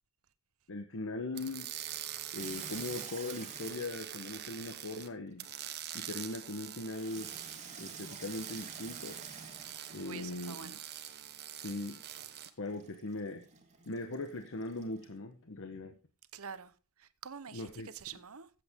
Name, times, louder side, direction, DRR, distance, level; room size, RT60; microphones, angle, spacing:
voice 1, 0.7-1.7 2.3-5.5 5.9-7.3 7.8-9.2 9.9-10.8 11.6-12.0 12.6-13.4 13.9-16.0 17.5-17.9, left 2 dB, 60° left, 1.1 m, -40 dB
sound 1, 1.3-5.1 5.4-12.5, right 11 dB, 50° right, 1.1 m, -45 dB
Water tap faucet / Sink (filling or washing), 2.4-5.3 6.9-10.6 12.6-15.2, right 6 dB, 30° right, 2.1 m, -49 dB
voice 2, 10.0-10.8 16.3-18.5, right 7 dB, 70° right, 0.9 m, -47 dB
15.0 x 7.9 x 3.7 m
head